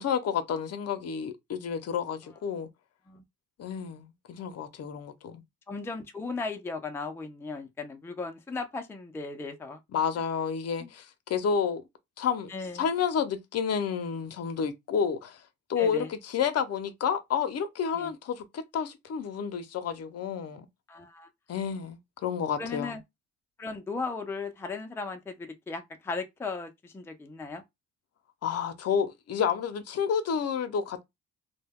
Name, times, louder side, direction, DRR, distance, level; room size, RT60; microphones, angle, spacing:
voice 1, 0.0-2.7 3.6-5.4 9.9-11.8 12.2-12.5 12.7-15.4 15.7-20.7 21.5-23.0 28.4-31.0, left 7 dB, 55° left, 0.6 m, -30 dB
voice 2, 5.7-9.8 10.8-10.9 12.5-12.8 15.8-16.1 17.9-18.1 20.9-21.3 22.6-23.0 23.6-27.6, left 4 dB, 10° left, 0.4 m, -36 dB
2.2 x 2.1 x 3.4 m
cardioid pair, 90°, 30 cm